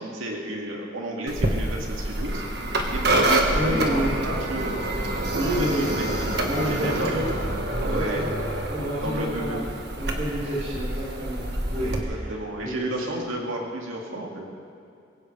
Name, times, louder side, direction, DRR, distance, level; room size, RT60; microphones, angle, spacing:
voice 1, 0.0-2.4 2.9-4.9 5.3-7.3 7.8-8.3 9.0-9.6 11.8-14.5, right 1 dB, 85° right, -1 dB, 2.4 m, -32 dB
sound 1, 1.3-12.0, right 1 dB, 55° right, 1.6 m, -27 dB
voice 2, 3.5-4.1 5.3-5.9 6.4-7.2 7.8-8.3 8.7-9.7 10.0-12.3 12.6-12.9, equal, 40° right, -12 dB, 4.9 m, -29 dB
22.0 x 17.0 x 3.4 m, 2.5 s
head